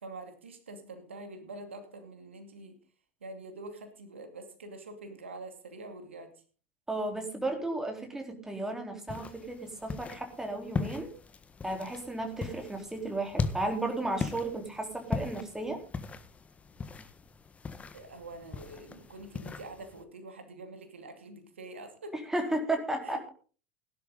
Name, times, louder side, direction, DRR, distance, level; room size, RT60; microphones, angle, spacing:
voice 1, 0.0-2.7 3.2-6.3 17.9-22.1 23.0-23.3, right 2 dB, 75° right, 7 dB, 2.4 m, -45 dB
voice 2, 6.9-11.1 11.6-15.8 22.1-23.3, right 2 dB, 5° right, 3 dB, 3.8 m, -34 dB
sound 1, 9.1-20.0, left 4 dB, 20° left, 1.5 m, -39 dB
18.0 x 11.5 x 3.9 m, 0.38 s
figure-of-eight pair, 80°, 7 cm